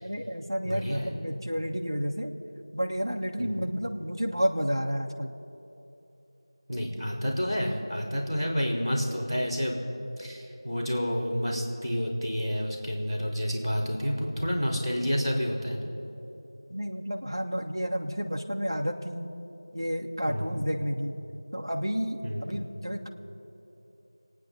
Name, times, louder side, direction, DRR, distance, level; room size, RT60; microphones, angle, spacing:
voice 1, 0.0-2.3 2.7-5.3 16.7-19.3 19.7-21.2 21.5-23.1, equal, 50° right, 1 dB, 1.5 m, -31 dB
voice 2, 0.6-1.1 3.4-3.7 6.7-9.8 10.2-15.9 20.3-20.6 22.2-22.6, equal, ahead, -29 dB, 2.6 m, -29 dB
28.5 x 9.6 x 4.3 m, 3.0 s
figure-of-eight pair, 180°, 3 cm